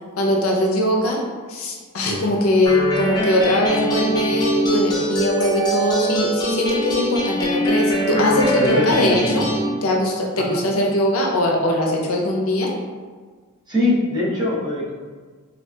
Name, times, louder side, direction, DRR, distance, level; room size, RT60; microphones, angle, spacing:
voice 1, 0.2-1.2 1.5-9.4 9.8-12.7, left 1 dB, 75° left, -1 dB, 0.5 m, -21 dB
sound 1, 2.7-9.7, equal, 20° left, 0.4 m, -23 dB
voice 2, 8.6-9.4 10.5-10.6 13.7-14.9, left 1 dB, 20° right, -10 dB, 0.7 m, -22 dB
2.7 x 2.4 x 2.2 m, 1.5 s
head